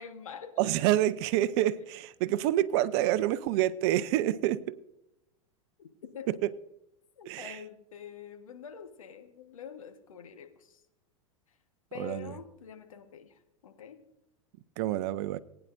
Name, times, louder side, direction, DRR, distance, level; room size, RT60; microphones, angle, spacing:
voice 1, 0.0-0.6 5.8-5.9 6.1-6.4 7.2-10.8 11.9-14.0, left 8 dB, 70° left, 1.5 m, -46 dB
voice 2, 0.6-4.7 6.4-6.5 7.3-7.6 12.0-12.3 14.8-15.4, right 13 dB, 50° right, 0.6 m, -27 dB
20.0 x 9.8 x 2.6 m
figure-of-eight pair, 90°, 18 cm